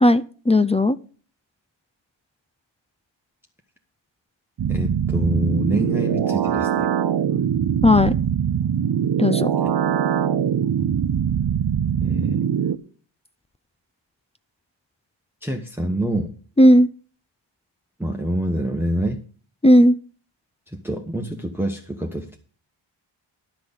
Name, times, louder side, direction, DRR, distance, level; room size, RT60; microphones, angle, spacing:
voice 1, 0.0-1.0 7.8-8.1 9.2-9.5 16.6-16.9 19.6-20.0, left 1 dB, 15° left, 15 dB, 0.4 m, -15 dB
sound 1, 4.6-12.8, right 8 dB, 55° right, 0.7 m, -22 dB
voice 2, 4.7-6.9 12.0-12.5 15.4-16.4 18.0-19.2 20.7-22.4, right 1 dB, 5° right, 3 dB, 1.1 m, -26 dB
11.5 x 6.1 x 7.1 m, 0.41 s
wide cardioid pair, 95°, 47 cm